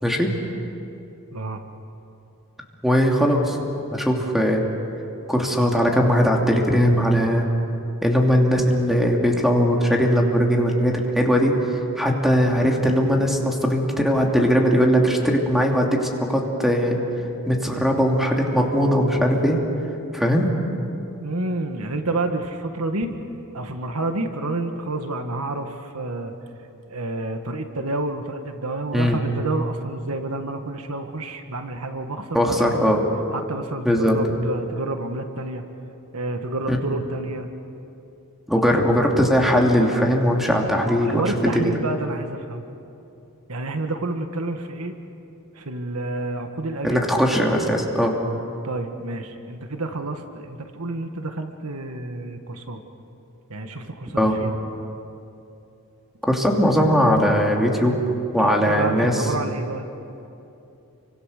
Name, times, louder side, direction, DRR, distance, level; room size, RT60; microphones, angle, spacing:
voice 1, 1.3-1.6 21.2-23.1 23.5-26.3 26.9-32.9 33.3-35.6 36.1-37.5 38.7-38.8 40.8-42.6 43.5-44.9 45.5-47.0 48.6-52.8 53.5-54.5 58.4-59.9, right 2 dB, 75° right, 6 dB, 1.7 m, -29 dB
voice 2, 2.8-3.6 3.9-4.6 5.3-7.5 8.0-11.5 12.0-17.0 17.5-19.6 20.1-20.5 28.9-29.2 32.3-33.0 33.8-34.2 36.7-36.8 38.5-41.7 46.8-48.1 54.2-54.4 56.3-58.0 58.3-59.1, equal, ahead, 0 dB, 2.8 m, -19 dB
30.0 x 24.5 x 6.7 m, 2.8 s
head